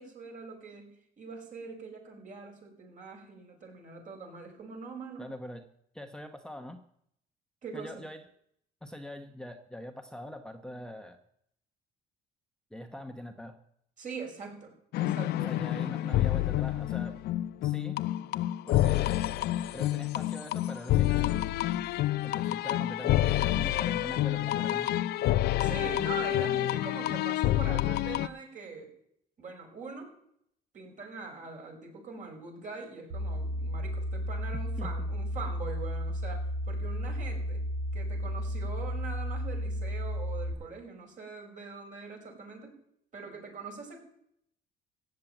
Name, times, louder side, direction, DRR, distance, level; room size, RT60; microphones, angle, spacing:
voice 1, 0.0-5.3 7.6-7.9 14.0-15.6 25.6-28.9 29.4-30.1 30.7-37.6 37.9-42.8 43.1-44.0, right 4 dB, 50° right, 1 dB, 5.4 m, -43 dB
voice 2, 5.2-5.6 5.9-6.8 7.7-8.2 8.8-11.2 12.7-13.5 15.4-17.2 17.6-18.0 18.7-19.1 19.7-21.5 22.2-24.9 34.8-34.9, left 1 dB, 5° left, 5 dB, 1.0 m, -42 dB
sound 1, 14.9-28.3, left 14 dB, 70° left, 0.5 m, -28 dB
sound 2, 33.1-40.5, equal, 85° right, 4.3 m, -33 dB
15.0 x 7.6 x 9.1 m, 0.72 s
cardioid pair, 110°, 17 cm